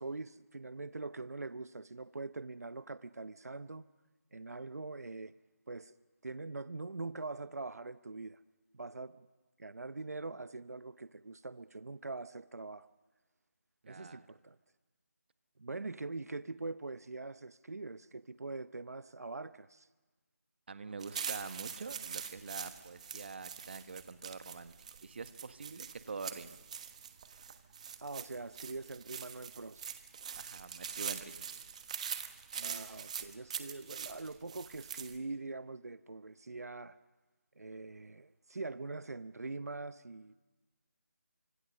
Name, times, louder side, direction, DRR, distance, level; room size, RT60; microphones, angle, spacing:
voice 1, 0.0-3.9 4.3-5.3 5.7-5.9 6.2-8.4 8.7-9.3 9.6-12.9 13.9-14.6 15.6-19.9 28.0-29.9 32.5-37.0 37.6-40.4, right 3 dB, 90° right, 0.7 m, -43 dB
voice 2, 13.8-14.3 20.7-24.7 25.0-26.6 30.4-31.4, right 4 dB, 45° right, 1.5 m, -45 dB
sound 1, 21.0-35.2, right 7 dB, 25° right, 1.2 m, -44 dB
28.5 x 25.5 x 6.5 m
figure-of-eight pair, 170°, 8 cm